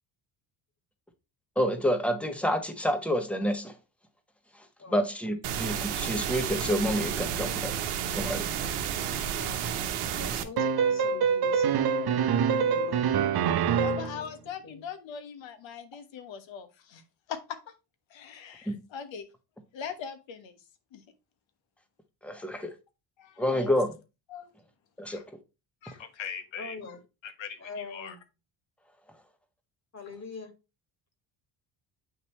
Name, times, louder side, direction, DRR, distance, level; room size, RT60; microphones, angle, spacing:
voice 1, 1.5-3.7 4.9-7.7 8.1-8.4 18.7-18.8 22.2-22.7 23.4-23.9 25.0-25.2, equal, ahead, 1.3 m, -28 dB
sound 1, 5.4-10.4, right 9 dB, 80° right, 1.1 m, -31 dB
voice 2, 9.3-9.6 10.1-14.8 26.6-27.0 27.6-28.2 29.9-30.5, left 3 dB, 30° left, 2.2 m, -44 dB
sound 2, 10.6-14.2, right 6 dB, 50° right, 0.8 m, -25 dB
voice 3, 11.9-12.2 13.8-17.0 17.3-17.6 18.1-19.2 19.7-20.5 20.9-21.0 22.4-22.6 23.2-23.7 24.3-24.5 25.1-25.2 25.8-26.9 27.2-28.1, left 7 dB, 65° left, 1.4 m, -41 dB
8.7 x 3.0 x 4.3 m
supercardioid pair, 75°, 49 cm